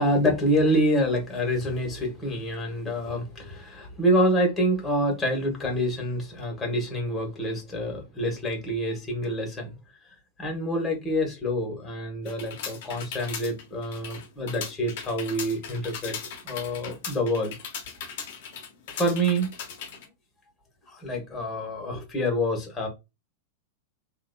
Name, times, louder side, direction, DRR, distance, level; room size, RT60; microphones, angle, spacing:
voice 1, 0.0-9.7 10.4-16.2 16.4-17.5 18.9-19.5 20.9-22.9, equal, 15° left, 1.6 m, -27 dB
sound 1, 12.3-20.1, left 6 dB, 55° left, 1.1 m, -38 dB
3.7 x 2.8 x 2.3 m
figure-of-eight pair, 95°, 0 cm